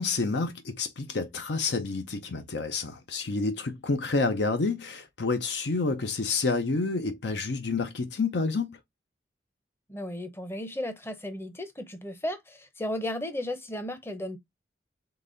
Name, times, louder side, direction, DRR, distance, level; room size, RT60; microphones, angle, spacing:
voice 1, 0.0-8.8, left 3 dB, 75° left, 0.7 m, -29 dB
voice 2, 9.9-14.4, left 1 dB, 15° left, 0.7 m, -34 dB
4.0 x 3.2 x 3.8 m
head